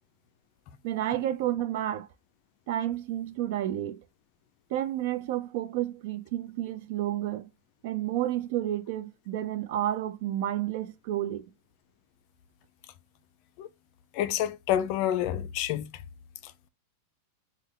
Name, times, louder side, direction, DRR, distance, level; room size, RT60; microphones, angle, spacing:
voice 1, 0.8-2.1 2.7-4.0 4.7-7.5 7.8-11.4, right 12 dB, 60° right, 0.5 m, -30 dB
voice 2, 14.1-15.9, left 11 dB, 50° left, 0.4 m, -28 dB
3.3 x 2.2 x 3.6 m
supercardioid pair, 135°, 0 cm